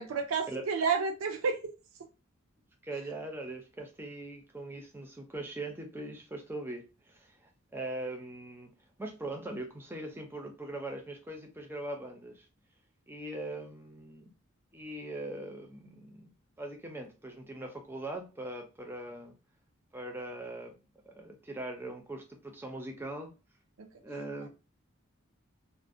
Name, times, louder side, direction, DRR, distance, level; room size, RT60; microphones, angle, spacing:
voice 1, 0.0-1.7 23.8-23.9, right 5 dB, 80° right, 4 dB, 0.4 m, -30 dB
voice 2, 2.8-8.7 9.0-12.5 13.1-14.3 14.7-16.3 16.6-19.3 19.9-20.8 21.1-23.3 24.0-24.5, right 1 dB, 10° right, 3 dB, 0.4 m, -41 dB
2.4 x 2.0 x 2.5 m, 0.30 s
head